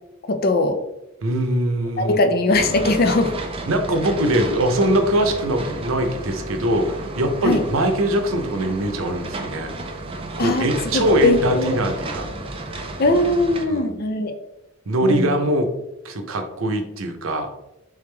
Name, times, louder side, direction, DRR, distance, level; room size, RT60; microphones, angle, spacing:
voice 1, 0.3-0.8 2.0-3.3 7.4-7.6 10.4-11.8 13.0-14.3 15.0-15.4, left 2 dB, 50° left, 7 dB, 0.5 m, -20 dB
voice 2, 1.2-2.2 3.7-9.7 10.4-12.3 13.7-13.9 14.9-15.7 16.0-17.5, right 1 dB, 90° right, 6 dB, 0.7 m, -22 dB
sound 1, 2.5-13.7, right 2 dB, 25° right, 0.5 m, -32 dB
3.5 x 3.4 x 3.2 m, 0.89 s
head